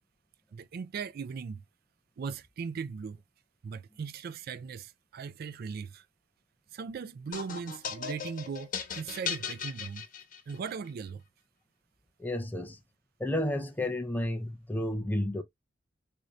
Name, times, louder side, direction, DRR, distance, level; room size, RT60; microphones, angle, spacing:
voice 1, 0.5-1.6 2.2-3.2 3.6-6.1 6.7-10.1 10.5-11.2, right 5 dB, 55° right, 0.3 m, -38 dB
sound 1, 7.3-10.7, left 7 dB, 45° left, 1.0 m, -37 dB
voice 2, 12.2-12.8 13.2-15.4, left 1 dB, 10° left, 0.4 m, -31 dB
3.8 x 2.6 x 3.1 m
head